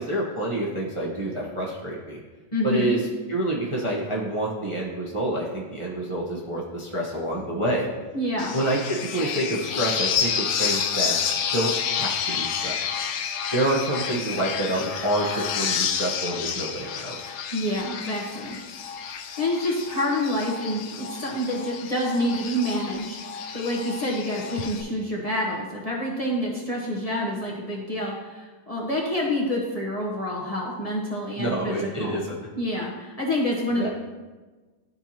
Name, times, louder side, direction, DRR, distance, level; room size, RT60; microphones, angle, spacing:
voice 1, 0.0-2.2 2.6-7.9 8.5-12.8 13.5-17.2 31.4-32.4 33.7-33.9, right 1 dB, 25° right, -5 dB, 0.8 m, -27 dB
voice 2, 2.5-3.0 8.1-8.5 17.5-18.6 19.4-23.2 23.5-32.2 32.6-33.9, left 1 dB, 25° left, -4 dB, 0.9 m, -27 dB
sound 1, 8.4-24.8, left 7 dB, 75° left, 1.1 m, -30 dB
12.5 x 4.5 x 2.8 m, 1.3 s
omnidirectional pair, 1.7 m